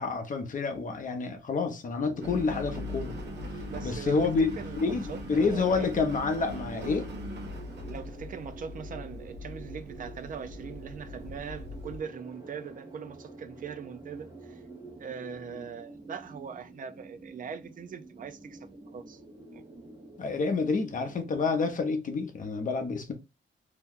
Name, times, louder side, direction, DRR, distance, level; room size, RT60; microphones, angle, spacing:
voice 1, 0.0-3.2 3.8-7.1 20.2-23.1, left 4 dB, 40° left, 0.7 m, -28 dB
sound 1, 2.0-21.8, right 3 dB, 20° right, 0.8 m, -48 dB
Engine, 2.2-12.0, left 1 dB, 60° right, 0.8 m, -40 dB
voice 2, 3.6-4.2 4.6-5.9 7.8-14.6 15.0-18.6 18.9-19.2 19.5-19.6, right 6 dB, 45° right, 0.4 m, -41 dB
2.8 x 2.2 x 3.6 m
wide cardioid pair, 175°, 20 cm